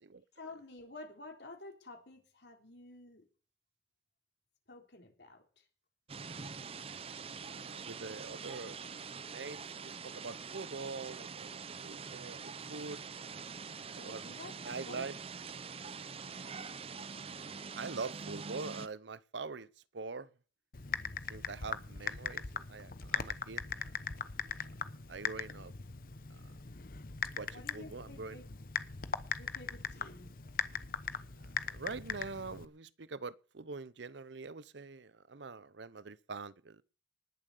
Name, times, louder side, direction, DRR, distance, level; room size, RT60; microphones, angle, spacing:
voice 1, 0.3-3.2 4.7-5.7 14.0-15.1 27.5-28.4 29.4-30.3, left 2 dB, 70° left, 3.7 m, -51 dB
sound 1, 6.1-18.9, right 5 dB, 30° right, 0.6 m, -45 dB
voice 2, 7.5-8.8 9.3-11.5 11.8-12.4 12.7-13.0 13.9-14.2 14.6-15.1 17.8-19.7 19.9-20.3 21.3-23.6 25.1-25.7 27.4-28.4 31.4-36.8, right 4 dB, 75° right, 0.7 m, -44 dB
Typing, 20.7-32.7, left 6 dB, 50° left, 0.9 m, -40 dB
19.5 x 7.4 x 6.8 m
head